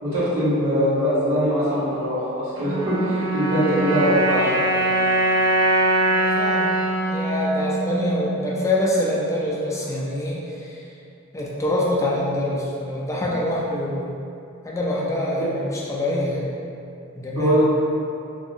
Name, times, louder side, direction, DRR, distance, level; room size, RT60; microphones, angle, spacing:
voice 1, 0.0-4.9 17.3-17.6, equal, 85° right, -11 dB, 1.2 m, -22 dB
sound 1, 2.6-9.0, right 1 dB, 70° right, 0.6 m, -22 dB
voice 2, 6.1-6.7 7.1-10.8 11.3-14.1 14.6-16.5 17.2-17.6, left 1 dB, 15° left, -5 dB, 0.3 m, -25 dB
3.1 x 2.6 x 2.6 m, 2.6 s
head